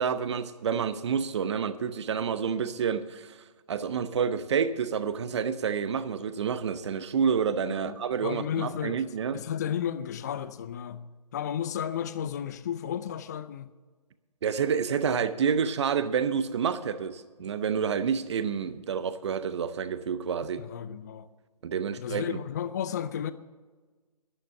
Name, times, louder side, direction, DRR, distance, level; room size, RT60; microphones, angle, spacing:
voice 1, 0.0-3.4 3.7-9.4 14.4-20.6 21.6-22.4, right 7 dB, 45° right, 0.8 m, -29 dB
voice 2, 8.2-9.0 9.3-13.7 20.6-21.3 22.0-23.3, left 9 dB, 25° left, 0.4 m, -33 dB
11.5 x 11.0 x 7.0 m
figure-of-eight pair, 150°, 20 cm